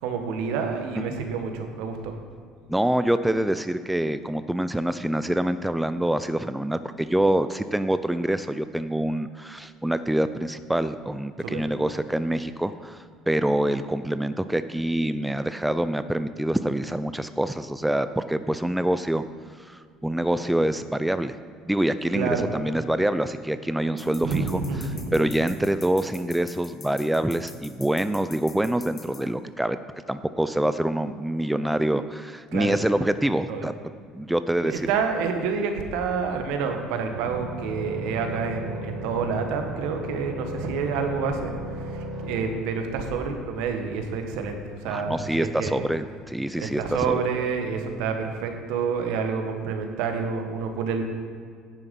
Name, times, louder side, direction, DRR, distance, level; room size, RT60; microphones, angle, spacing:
voice 1, 0.0-2.1 11.4-11.6 22.1-22.5 24.2-25.2 32.5-32.7 33.5-33.7 34.6-45.9 46.6-51.0, right 5 dB, 75° right, 5 dB, 1.3 m, -28 dB
voice 2, 2.7-19.2 19.6-21.4 21.7-24.6 25.1-29.8 30.1-34.9 44.9-47.2, right 1 dB, 5° right, 12 dB, 0.4 m, -26 dB
sound 1, 24.0-29.2, left 5 dB, 40° left, 1.4 m, -45 dB
sound 2, 37.1-42.5, equal, 55° right, 2.6 m, -35 dB
10.0 x 7.1 x 5.3 m, 2.1 s
hypercardioid pair, 75°, 0 cm